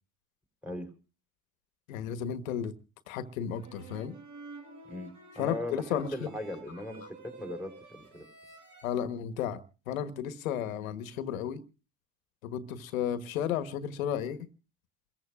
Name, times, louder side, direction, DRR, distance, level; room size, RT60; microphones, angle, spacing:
voice 1, 1.9-2.7 3.1-4.2 5.4-6.3 8.8-11.6 12.4-14.5, left 9 dB, 80° left, 11 dB, 1.5 m, -33 dB
sound 1, 3.5-8.9, right 2 dB, 65° right, 7.4 m, -50 dB
voice 2, 4.9-8.3, left 1 dB, 5° right, 6 dB, 3.9 m, -39 dB
28.5 x 14.5 x 2.4 m, 0.34 s
hypercardioid pair, 90°, 40 cm